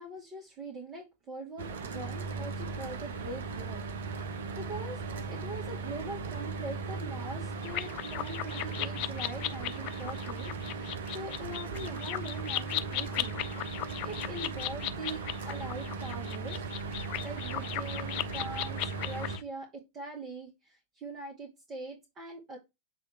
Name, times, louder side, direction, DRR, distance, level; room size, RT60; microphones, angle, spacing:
voice 1, 0.0-3.9 4.6-13.4 14.0-16.6 17.2-22.6, right 2 dB, 30° right, -1 dB, 2.2 m, -42 dB
Mechanical fan, 1.6-19.4, right 4 dB, 60° right, 0.9 m, -38 dB
sound 1, 7.6-19.4, left 14 dB, 40° left, 0.5 m, -37 dB
7.7 x 3.4 x 4.6 m, 0.22 s
figure-of-eight pair, 90°, 0 cm